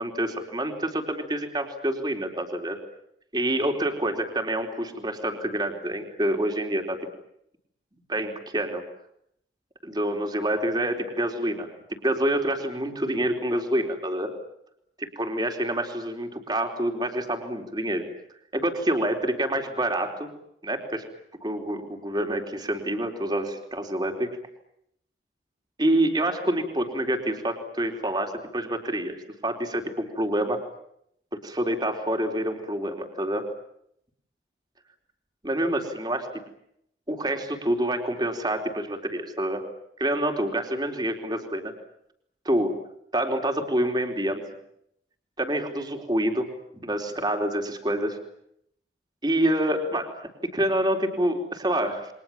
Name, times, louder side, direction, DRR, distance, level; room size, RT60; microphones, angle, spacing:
voice 1, 0.0-2.8 3.3-7.0 8.1-8.8 9.8-14.3 15.2-18.0 18.5-20.3 20.6-21.0 21.4-24.3 25.8-30.6 31.3-33.4 35.4-36.3 37.1-39.6 40.0-41.7 42.4-42.7 43.1-44.4 45.4-46.5 46.8-48.2 49.2-52.1, right 1 dB, 25° right, 3 dB, 4.1 m, -27 dB
29.5 x 24.5 x 7.4 m, 0.74 s
head